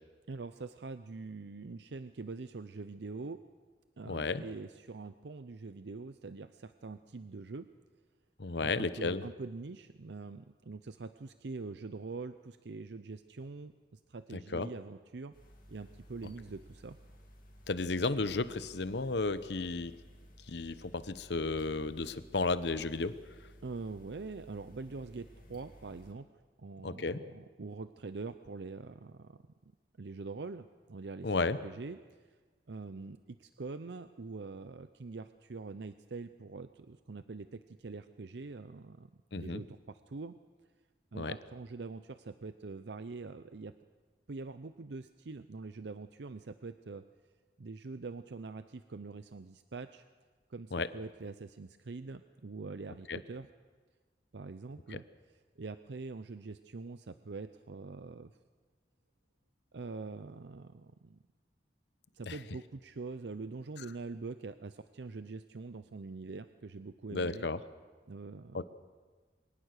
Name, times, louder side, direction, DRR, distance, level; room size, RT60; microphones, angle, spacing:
voice 1, 0.3-3.4 4.0-7.7 8.6-15.3 15.7-17.0 23.6-26.3 26.6-29.4 30.0-32.3 32.7-40.3 41.1-43.7 44.3-47.0 47.6-50.0 50.5-53.5 54.3-58.3 59.7-61.2 62.1-67.5 68.1-68.6, right 3 dB, 75° right, 11 dB, 0.6 m, -44 dB
voice 2, 4.1-4.4 8.4-9.2 14.5-14.7 17.7-19.9 20.5-23.1 26.8-27.2 31.2-31.6 39.3-39.6 41.1-41.3 50.7-50.9 53.1-53.2 62.3-62.4 67.1-67.6 68.5-68.6, left 3 dB, 75° left, 13 dB, 0.8 m, -33 dB
sound 1, 15.3-26.1, equal, 50° left, 2.6 m, -56 dB
23.0 x 19.0 x 6.6 m, 1.4 s
head